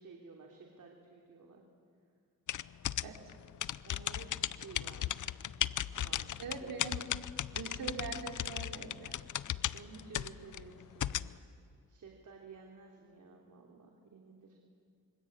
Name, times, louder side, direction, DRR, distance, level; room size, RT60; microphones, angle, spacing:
voice 1, 0.0-1.6 3.8-5.3 5.9-6.8 9.7-11.2 11.9-14.6, right 4 dB, 60° right, 0 dB, 3.2 m, -53 dB
sound 1, 2.5-11.3, left 11 dB, 60° left, 0.6 m, -36 dB
voice 2, 6.4-7.1 7.5-9.2, right 5 dB, 85° right, 2 dB, 3.3 m, -42 dB
26.0 x 24.5 x 8.8 m, 2.3 s
cardioid pair, 100°, 34 cm